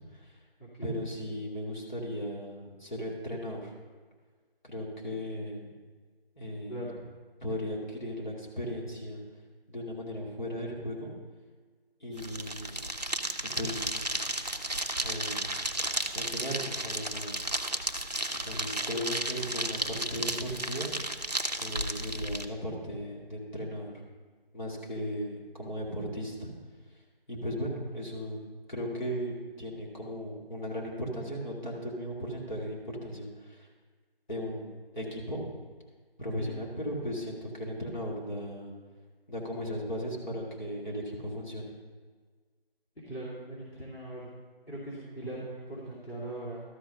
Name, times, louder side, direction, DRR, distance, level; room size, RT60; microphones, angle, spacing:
voice 1, 0.8-3.7 4.6-5.7 6.4-6.9 7.4-9.2 9.7-11.1 12.0-12.8 13.5-14.1 15.0-15.6 16.1-17.5 18.4-20.9 21.6-23.9 24.5-26.5 27.3-28.4 28.7-33.7 34.3-35.4 36.2-38.7 39.3-41.7, equal, 50° left, -4 dB, 2.4 m, -36 dB
voice 2, 6.7-7.0 36.4-36.6 43.1-44.3 44.7-46.6, right 1 dB, 80° left, -9 dB, 2.9 m, -40 dB
sound 1, 12.1-22.5, right 1 dB, 45° right, 0.5 m, -33 dB
13.0 x 4.8 x 5.4 m, 1.5 s
figure-of-eight pair, 170°, 30 cm